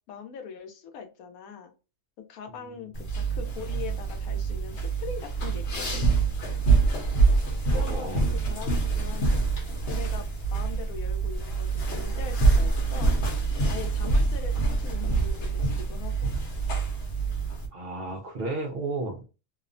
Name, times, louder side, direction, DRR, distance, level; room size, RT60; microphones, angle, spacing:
voice 1, 0.1-1.7 2.2-6.1 7.7-9.3 9.8-13.1 13.7-16.3, left 6 dB, 90° left, 6 dB, 1.1 m, -41 dB
sound 1, 2.9-17.7, right 4 dB, 55° left, 1.0 m, -26 dB
voice 2, 7.7-8.2 17.7-19.2, right 2 dB, 55° right, 1 dB, 0.7 m, -33 dB
2.8 x 2.1 x 2.5 m, 0.31 s
omnidirectional pair, 1.4 m